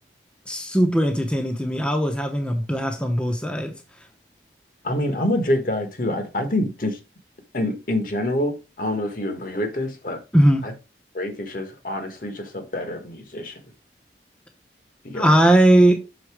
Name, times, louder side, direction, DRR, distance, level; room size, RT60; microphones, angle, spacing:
voice 1, 0.5-3.7 10.3-10.7 15.1-16.0, right 1 dB, 5° left, 0.8 m, -19 dB
voice 2, 4.8-7.0 7.5-10.2 10.6-10.7 11.1-13.6 15.0-15.3, left 1 dB, 50° left, 1.3 m, -26 dB
6.5 x 4.1 x 4.8 m
head